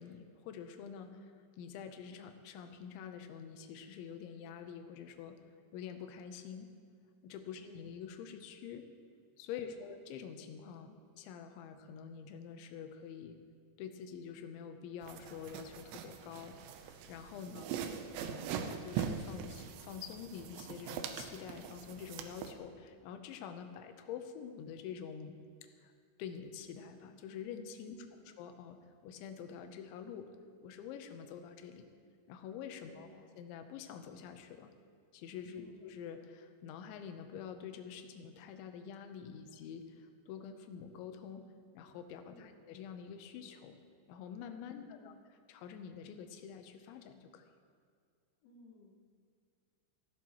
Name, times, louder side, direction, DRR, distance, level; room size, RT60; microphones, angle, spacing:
voice 1, 0.0-5.4 5.7-6.7 7.2-8.9 9.4-13.4 13.8-17.7 18.2-25.9 26.2-28.0 28.4-30.3 30.6-31.9 32.3-33.1 33.4-34.7 35.1-41.5 41.7-43.8 44.1-45.1 45.5-47.5, left 7 dB, 80° left, 7 dB, 3.2 m, -47 dB
voice 2, 9.6-9.9 17.5-17.8 27.9-28.3 32.8-33.3 35.6-35.9 42.3-42.6 44.7-45.2 48.4-49.0, left 4 dB, 65° left, -2 dB, 3.6 m, -58 dB
sound 1, 15.0-22.5, right 8 dB, 80° right, 2.9 m, -42 dB
18.5 x 14.5 x 3.0 m, 2.2 s
omnidirectional pair, 5.3 m